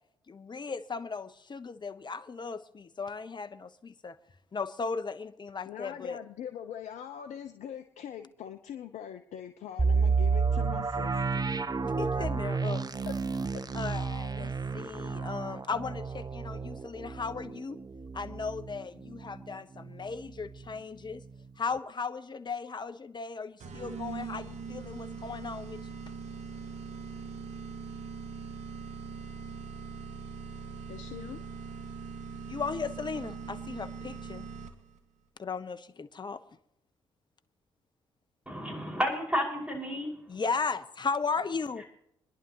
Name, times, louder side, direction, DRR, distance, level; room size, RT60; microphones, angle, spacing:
voice 1, 0.3-4.2 4.5-6.2 11.8-12.8 13.7-17.8 18.1-21.2 21.6-25.8 32.5-34.5 35.4-36.4 40.3-41.8, left 5 dB, 35° left, 11 dB, 1.0 m, -36 dB
voice 2, 5.7-11.4 13.1-13.7 30.9-31.4, left 9 dB, 65° left, 8 dB, 0.8 m, -42 dB
sound 1, 9.8-19.5 19.9-20.0 20.5-20.7, right 4 dB, 30° right, 1.0 m, -31 dB
sound 2, 23.6-35.0, right 5 dB, 65° right, 1.7 m, -41 dB
voice 3, 38.5-40.4, equal, 10° right, 1 dB, 5.7 m, -32 dB
27.0 x 11.0 x 3.0 m, 0.78 s
hypercardioid pair, 45°, 13 cm